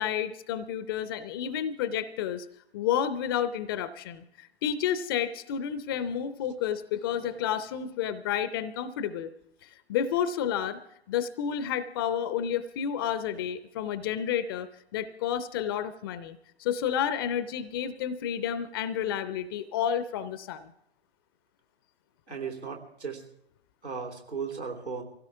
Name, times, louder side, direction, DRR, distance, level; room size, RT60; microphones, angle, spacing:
voice 1, 0.0-2.5 2.7-9.3 9.6-10.8 11.1-20.7, left 9 dB, 20° left, 14 dB, 0.5 m, -30 dB
voice 2, 22.3-23.2 23.8-25.0, right 5 dB, 85° right, -1 dB, 3.4 m, -36 dB
24.0 x 16.5 x 3.5 m, 0.77 s
figure-of-eight pair, 115°, 33 cm